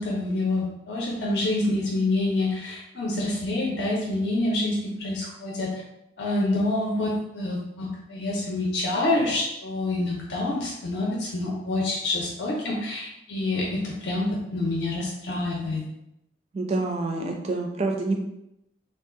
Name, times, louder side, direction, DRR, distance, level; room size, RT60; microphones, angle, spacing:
voice 1, 0.0-5.8 6.2-15.9, left 2 dB, 65° left, -3 dB, 0.5 m, -27 dB
voice 2, 16.5-18.2, right 2 dB, 35° right, 2 dB, 0.4 m, -27 dB
2.5 x 2.2 x 3.7 m, 0.84 s
head